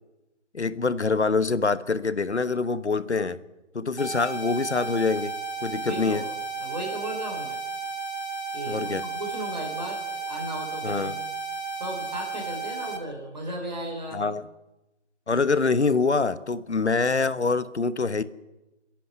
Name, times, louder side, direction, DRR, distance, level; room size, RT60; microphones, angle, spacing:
voice 1, 0.5-3.4 3.7-5.3 5.6-6.2 8.7-9.0 10.8-11.2 14.1-14.4 15.3-18.2, left 4 dB, 70° left, 16 dB, 1.2 m, -25 dB
sound 1, 4.0-13.0, right 4 dB, 40° left, 2.2 m, -33 dB
voice 2, 5.8-7.6 8.5-11.3 11.7-14.2, right 1 dB, 40° right, 0 dB, 4.2 m, -36 dB
28.5 x 11.0 x 9.6 m, 1.0 s
figure-of-eight pair, 175°, 35 cm